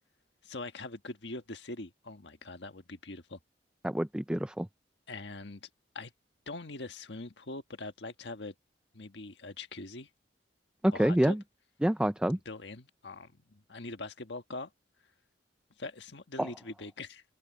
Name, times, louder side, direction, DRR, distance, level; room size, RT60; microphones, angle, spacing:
voice 1, 0.4-3.4 5.1-5.7 5.9-6.1 6.5-8.5 8.9-10.1 10.9-11.4 12.4-14.7 15.8-17.2, left 2 dB, 80° left, 1.5 m, -42 dB
voice 2, 3.8-4.7 10.8-11.4 11.8-12.4 16.4-16.5, right 1 dB, 5° right, 0.4 m, -27 dB
open air
head